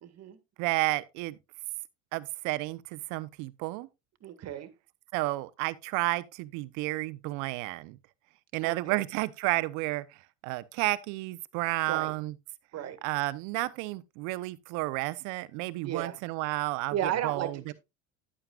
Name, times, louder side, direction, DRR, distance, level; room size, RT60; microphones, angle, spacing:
voice 1, 0.0-0.4 4.2-4.7 8.6-9.0 11.9-12.1 12.7-13.0 15.8-16.2 16.9-17.7, right 10 dB, 50° right, 1.9 m, -34 dB
voice 2, 0.6-1.4 2.1-3.9 5.1-8.0 8.5-10.1 10.4-12.3 13.0-17.7, right 20 dB, 70° right, 0.8 m, -31 dB
11.0 x 8.9 x 2.4 m
supercardioid pair, 90°, 32 cm